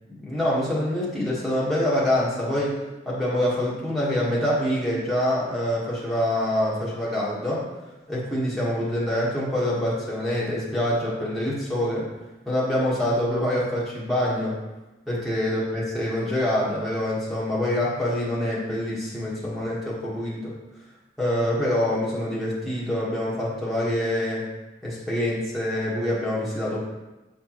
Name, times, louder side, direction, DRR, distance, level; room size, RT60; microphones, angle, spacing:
voice 1, 0.1-2.7 3.0-7.6 8.1-12.1 12.4-14.6 15.1-20.5 21.2-24.4 24.8-26.8, left 1 dB, ahead, -9 dB, 1.4 m, -25 dB
8.1 x 4.5 x 3.0 m, 1.1 s
head